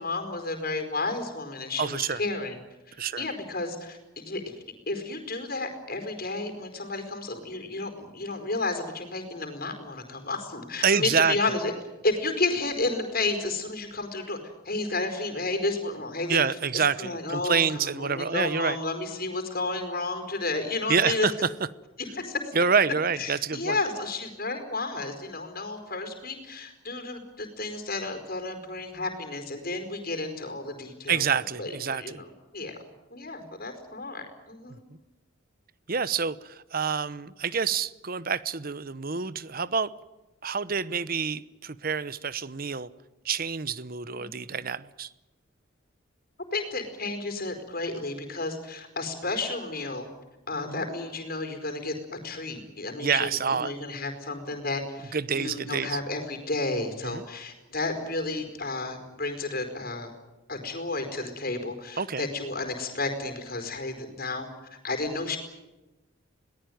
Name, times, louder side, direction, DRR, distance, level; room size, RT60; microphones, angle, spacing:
voice 1, 0.0-2.6 3.2-4.4 4.9-11.7 12.0-14.4 14.6-16.4 16.7-21.3 22.0-22.5 23.2-31.2 31.6-32.3 32.5-32.8 33.1-34.8 44.1-44.3 46.5-50.1 50.5-51.9 52.2-60.1 60.5-65.4, left 2 dB, 45° left, 7 dB, 4.7 m, -32 dB
voice 2, 1.8-2.2 3.0-3.2 10.8-11.3 16.3-18.8 20.9-21.5 22.5-23.8 31.1-32.2 34.7-34.8 35.9-39.9 40.4-42.9 43.2-45.1 50.7-50.9 53.0-53.7 55.1-56.0 57.0-57.2 62.0-62.3, right 6 dB, 45° right, 17 dB, 0.9 m, -27 dB
22.0 x 19.0 x 9.4 m, 1.1 s
head